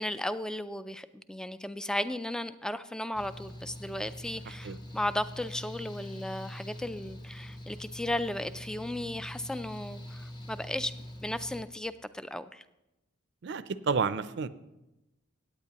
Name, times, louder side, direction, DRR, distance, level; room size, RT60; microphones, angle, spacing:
voice 1, 0.0-10.9 11.2-12.6, left 1 dB, 5° left, 13 dB, 0.3 m, -35 dB
Mechanical fan, 3.1-11.6, equal, 20° left, 0.9 m, -44 dB
voice 2, 13.4-14.5, right 5 dB, 60° right, 14 dB, 0.5 m, -30 dB
17.0 x 9.0 x 2.9 m, 0.94 s
head